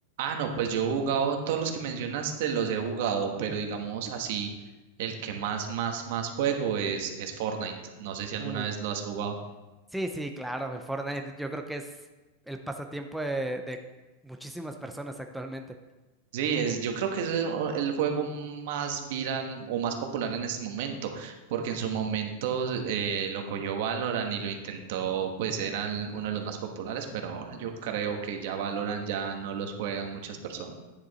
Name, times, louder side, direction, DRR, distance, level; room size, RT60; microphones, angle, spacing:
voice 1, 0.2-4.5 5.0-7.7 8.0-9.3 16.3-30.8, right 7 dB, 65° right, 4 dB, 1.4 m, -31 dB
voice 2, 9.9-11.9 12.5-13.8 14.2-15.6, right 1 dB, ahead, 4 dB, 0.6 m, -35 dB
9.7 x 6.6 x 4.2 m, 1.1 s
supercardioid pair, 135°, 0 cm